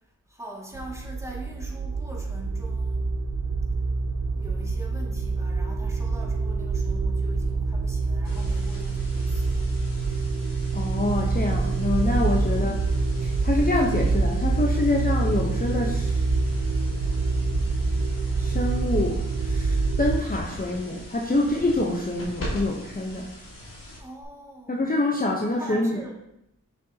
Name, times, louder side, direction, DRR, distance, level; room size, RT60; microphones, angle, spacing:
voice 1, 0.3-3.1 4.3-9.5 12.5-12.9 24.0-24.8 25.6-26.2, right 1 dB, 10° right, -3 dB, 2.2 m, -43 dB
sound 1, 0.7-20.2, right 3 dB, 65° right, 0.7 m, -26 dB
sound 2, 8.2-24.2, left 1 dB, 75° left, 2.7 m, -41 dB
voice 2, 10.7-12.8 13.2-16.3 18.4-23.3 24.7-26.1, left 2 dB, 25° left, -1 dB, 1.0 m, -26 dB
6.7 x 6.2 x 2.9 m, 0.83 s
cardioid pair, 40°, 33 cm